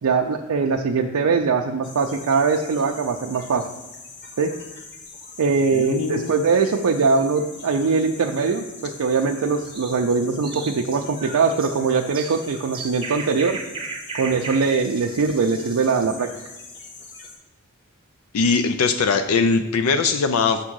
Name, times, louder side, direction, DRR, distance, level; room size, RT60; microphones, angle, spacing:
voice 1, 0.0-3.6 4.4-4.5 5.4-13.6 14.1-16.3, right 4 dB, 80° right, 2 dB, 0.5 m, -21 dB
sound 1, 1.8-17.4, left 3 dB, 50° left, 1.2 m, -42 dB
voice 2, 5.7-6.3 18.3-20.6, left 4 dB, 70° left, 8 dB, 0.4 m, -21 dB
sound 2, 9.6-16.2, right 4 dB, 25° right, 0.7 m, -36 dB
6.8 x 3.6 x 6.2 m, 1.0 s
head